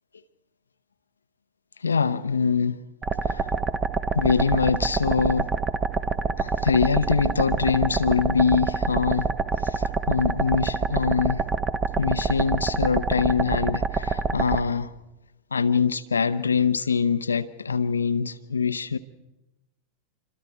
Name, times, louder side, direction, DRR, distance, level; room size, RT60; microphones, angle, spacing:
voice 1, 1.8-2.8 3.2-3.5 4.1-5.5 6.4-9.3 9.6-11.5 12.0-14.9 15.5-19.0, left 5 dB, 75° left, 0.7 m, -24 dB
sound 1, 3.0-14.6, right 4 dB, 25° right, 1.1 m, -26 dB
27.5 x 25.0 x 4.7 m
figure-of-eight pair, 90°, 0 cm